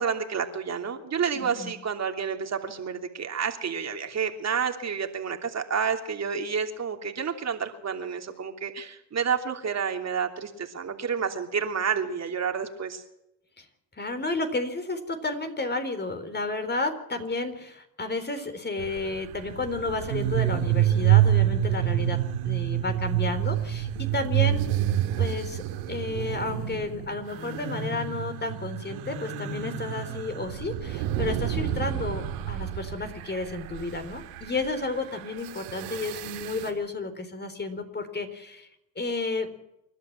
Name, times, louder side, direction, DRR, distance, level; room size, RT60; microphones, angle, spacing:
voice 1, 0.0-13.0, right 6 dB, 40° right, 4 dB, 3.1 m, -30 dB
voice 2, 1.3-1.7 13.6-13.7 14.0-22.2 22.4-24.6 25.2-25.6 25.9-38.7 39.0-39.5, left 3 dB, 25° left, 7 dB, 4.2 m, -32 dB
sound 1, 18.8-36.7, right 11 dB, 90° right, 3.3 m, -28 dB
28.5 x 12.0 x 7.6 m, 0.85 s
supercardioid pair, 85°, 40 cm